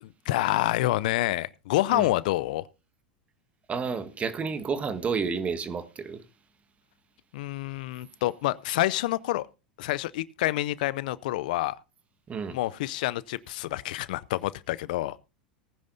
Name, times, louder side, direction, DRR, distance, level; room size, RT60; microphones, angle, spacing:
voice 1, 0.0-2.6 7.3-9.5 9.8-11.8 12.5-15.2, left 16 dB, 65° left, 0.5 m, -28 dB
voice 2, 3.7-6.2 12.3-12.6, right 5 dB, 25° right, 1.6 m, -30 dB
18.5 x 10.0 x 2.7 m
hypercardioid pair, 85°, 5 cm